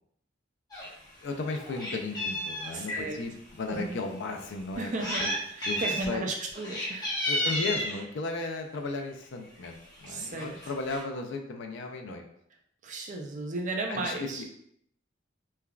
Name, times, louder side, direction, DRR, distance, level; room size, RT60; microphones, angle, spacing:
Meow, 0.7-0.9 1.3-3.0 3.7-3.8 4.7-5.4 5.6-6.1 6.5-8.0 9.0-9.2 9.6-9.7 9.9-10.1 10.4-11.0, equal, 20° left, 0.8 m, -32 dB
voice 1, 1.2-3.3 3.6-4.9 5.2-5.3 5.7-6.2 7.3-12.2 13.9-14.1, left 3 dB, 60° left, 3 dB, 0.4 m, -35 dB
voice 2, 2.7-3.2 3.6-4.0 4.8-7.2 10.1-10.7 12.8-14.5, right 2 dB, 40° right, 2 dB, 0.4 m, -35 dB
3.2 x 2.3 x 2.3 m, 0.71 s
head